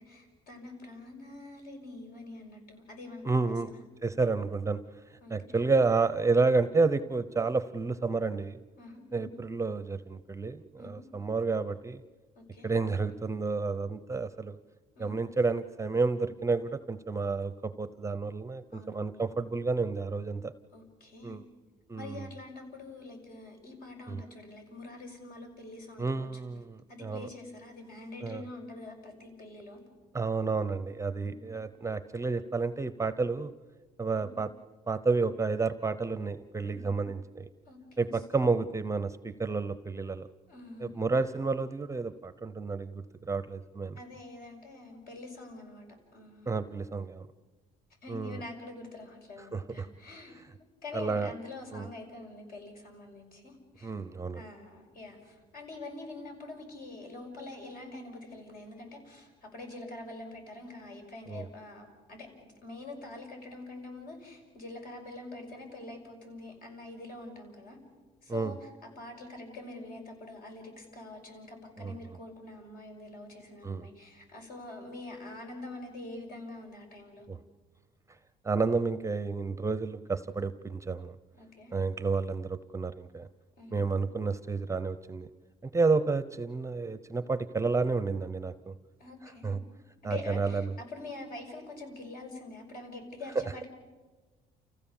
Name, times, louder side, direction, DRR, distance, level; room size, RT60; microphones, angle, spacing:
voice 1, 0.0-3.8 5.2-5.6 8.8-9.4 10.8-11.0 12.4-12.7 15.0-15.2 18.7-19.3 20.7-21.4 21.9-26.3 26.9-29.8 31.2-31.4 34.2-34.3 36.7-37.0 37.7-38.5 40.5-41.0 43.9-45.9 46.1-46.7 48.0-50.3 50.8-53.9 54.3-62.3 62.6-67.8 68.2-68.6 68.8-77.3 81.3-81.8 83.6-83.8 89.0-89.6 90.0-93.7, left 2 dB, 60° left, 3 dB, 6.0 m, -45 dB
voice 2, 3.2-3.7 4.0-8.6 9.1-12.0 12.6-14.6 15.0-20.5 21.2-21.4 21.9-22.3 24.1-24.2 26.0-27.3 28.2-28.4 30.1-33.5 34.0-34.5 34.9-37.5 38.0-40.3 40.8-44.0 46.5-47.3 48.1-48.4 49.4-49.9 50.4-50.5 50.9-51.3 51.7-51.9 53.8-54.4 61.3-61.5 68.3-68.5 71.8-72.2 73.6-73.9 77.3-77.4 78.4-81.2 81.7-83.3 83.7-85.3 85.6-88.7 89.2-89.6 90.0-90.8, right 4 dB, 15° right, 13 dB, 0.7 m, -30 dB
29.5 x 15.5 x 7.2 m, 1.3 s
cardioid pair, 110°, 17 cm